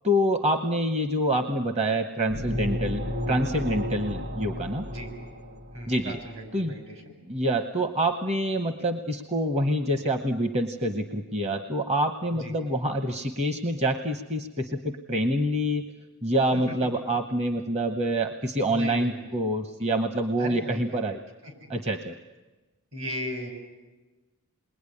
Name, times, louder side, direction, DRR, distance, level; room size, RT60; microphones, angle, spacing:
voice 1, 0.0-4.9 5.9-6.2 6.5-6.7 7.3-15.8 16.2-21.2 21.7-22.2, right 1 dB, 30° right, 7 dB, 1.0 m, -26 dB
sound 1, 2.3-6.0, left 1 dB, 50° right, 1.9 m, -32 dB
voice 2, 5.7-7.2 12.3-12.6 16.5-16.7 18.7-19.4 20.4-21.1 21.4-21.7 22.9-23.5, equal, 65° right, 4 dB, 6.0 m, -37 dB
28.0 x 21.0 x 9.9 m, 1.2 s
head